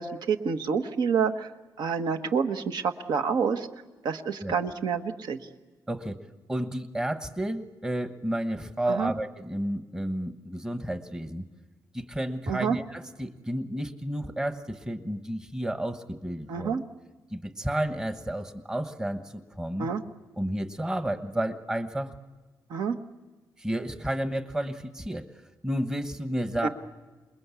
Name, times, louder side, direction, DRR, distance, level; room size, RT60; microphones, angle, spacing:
voice 1, 0.0-1.5 1.8-3.7 4.0-5.4 8.9-9.1 12.5-12.8 16.5-16.8 19.8-20.0 22.7-23.0 26.6-26.7, right 6 dB, 65° right, 7 dB, 1.5 m, -28 dB
voice 2, 5.9-11.5 11.9-16.8 17.3-19.9 20.4-22.1 23.6-26.7, right 1 dB, 10° right, 8 dB, 1.2 m, -31 dB
28.0 x 21.0 x 8.4 m, 1.2 s
wide cardioid pair, 170°, 8 cm